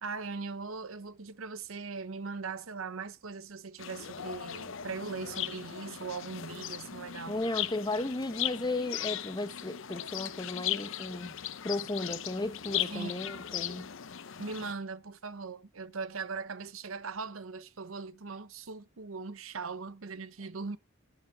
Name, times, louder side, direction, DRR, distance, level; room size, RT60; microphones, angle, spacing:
voice 1, 0.0-7.4 12.9-13.2 14.4-20.8, right 4 dB, 85° right, 0.9 m, -40 dB
sound 1, 3.8-14.7, left 11 dB, 65° left, 0.7 m, -38 dB
voice 2, 7.3-11.4 11.6-13.9, left 2 dB, 20° left, 1.1 m, -35 dB
10.5 x 9.6 x 4.7 m
head